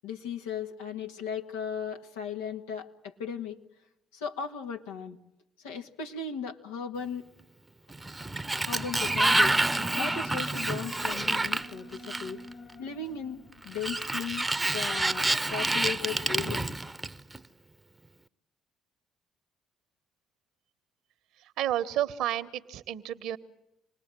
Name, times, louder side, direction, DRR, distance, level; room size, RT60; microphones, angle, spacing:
voice 1, 0.0-3.6 4.1-5.2 5.6-7.2 8.7-9.6 9.9-12.4 12.8-14.5 14.7-16.7, left 6 dB, 85° left, 3 dB, 1.8 m, -36 dB
Sliding door, 7.9-12.5 13.7-17.4, right 2 dB, 15° right, 0.9 m, -28 dB
Alarm, 8.9-16.1, left 1 dB, 60° left, 4.2 m, -48 dB
voice 2, 21.4-23.4, right 12 dB, 70° right, 12 dB, 1.2 m, -31 dB
27.0 x 20.0 x 7.6 m, 0.86 s
hypercardioid pair, 55°, 0 cm